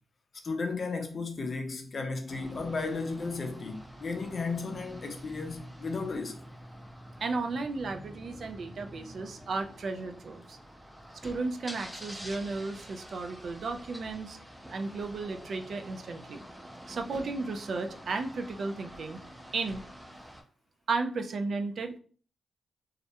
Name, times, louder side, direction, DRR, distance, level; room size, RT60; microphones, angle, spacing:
voice 1, 0.4-6.4, left 4 dB, 55° left, 0.5 m, -34 dB
sound 1, 2.3-20.4, equal, 10° right, 0.5 m, -47 dB
voice 2, 7.2-10.6 11.2-14.4 14.7-16.4 16.9-19.2 19.5-19.8 20.9-22.0, right 3 dB, 65° right, 0.3 m, -34 dB
2.3 x 2.1 x 2.8 m
cardioid pair, 70°, 0 cm